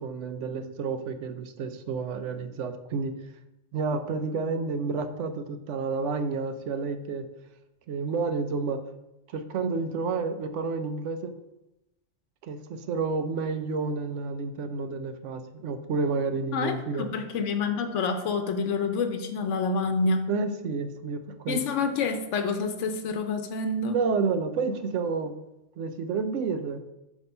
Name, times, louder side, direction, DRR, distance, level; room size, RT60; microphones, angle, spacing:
voice 1, 0.0-3.2 3.7-7.3 7.9-8.9 9.3-11.3 12.4-17.1 20.3-21.6 23.9-25.3 25.8-26.8, right 4 dB, 85° right, 9 dB, 1.0 m, -30 dB
voice 2, 16.5-20.3 21.5-24.0, left 4 dB, 90° left, 7 dB, 1.0 m, -28 dB
8.1 x 3.0 x 5.4 m, 0.93 s
omnidirectional pair, 1.2 m